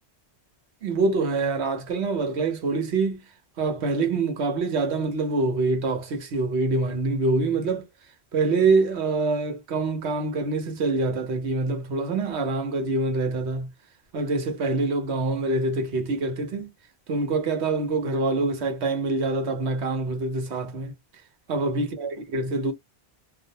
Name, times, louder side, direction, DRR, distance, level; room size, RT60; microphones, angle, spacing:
voice 1, 0.8-3.2 3.6-7.9 8.3-13.7 14.1-16.7 17.1-20.9 21.5-22.7, right 3 dB, 90° right, 1.1 m, -25 dB
2.4 x 2.1 x 2.7 m
omnidirectional pair, 1.1 m